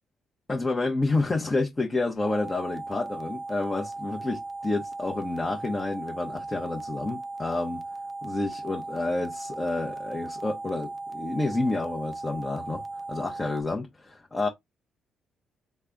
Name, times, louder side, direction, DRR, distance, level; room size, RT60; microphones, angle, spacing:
voice 1, 0.5-7.8 8.2-12.8 13.1-13.9 14.3-14.5, left 2 dB, 25° left, 0.9 m, -29 dB
sound 1, 2.2-13.6, right 2 dB, 30° right, 0.6 m, -37 dB
3.3 x 2.3 x 3.8 m
hypercardioid pair, 50°, 0 cm